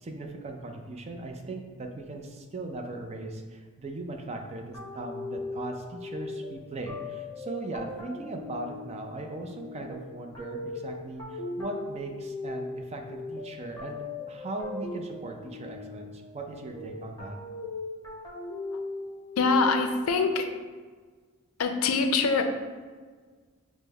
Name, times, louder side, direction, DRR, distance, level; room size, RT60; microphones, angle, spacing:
voice 1, 0.0-17.4, right 2 dB, 30° right, 3 dB, 0.4 m, -39 dB
sound 1, 4.7-20.1, left 3 dB, 15° left, 0.8 m, -39 dB
voice 2, 19.4-20.5 21.6-22.4, left 4 dB, 80° left, 6 dB, 0.4 m, -24 dB
5.2 x 2.1 x 3.3 m, 1.5 s
head